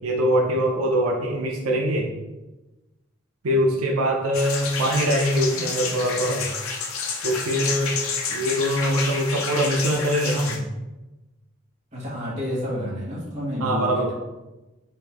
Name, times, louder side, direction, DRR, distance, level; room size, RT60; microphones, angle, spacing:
voice 1, 0.0-2.1 3.4-6.5 7.2-7.9 8.3-10.6 13.6-14.1, equal, 90° right, 1 dB, 0.6 m, -23 dB
sound 1, 4.3-10.6, left 5 dB, 85° left, 0.6 m, -29 dB
voice 2, 11.9-14.1, equal, 35° right, -5 dB, 1.2 m, -30 dB
4.2 x 2.6 x 3.4 m, 1.1 s
head